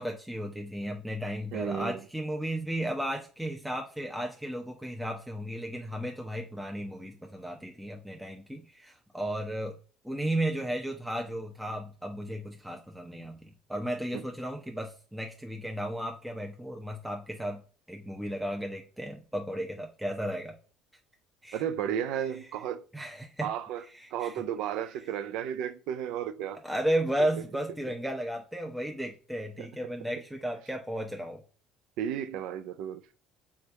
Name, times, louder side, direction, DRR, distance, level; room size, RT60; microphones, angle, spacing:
voice 1, 0.0-9.8 10.0-17.6 17.9-20.6 21.4-21.6 22.9-23.5 23.9-24.4 26.6-31.4, right 1 dB, 5° right, 0.7 m, -34 dB
voice 2, 1.5-2.0 14.1-14.2 21.5-22.8 23.4-23.8 24.1-26.6 29.6-29.7 32.0-33.0, right 9 dB, 70° right, 0.4 m, -33 dB
3.5 x 3.3 x 4.0 m
hypercardioid pair, 65°, 0 cm